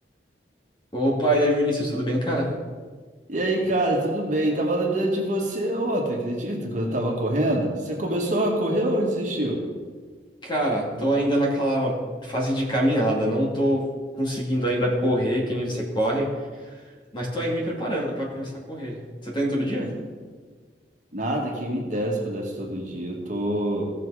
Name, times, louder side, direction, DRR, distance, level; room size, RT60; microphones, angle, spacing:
voice 1, 0.9-2.5 10.4-13.9 14.2-16.3 17.1-19.9, equal, 30° left, -2 dB, 2.5 m, -24 dB
voice 2, 3.3-9.6 19.8-19.9 21.1-23.8, right 1 dB, 45° right, 0 dB, 1.9 m, -25 dB
16.5 x 6.7 x 4.9 m, 1.5 s
head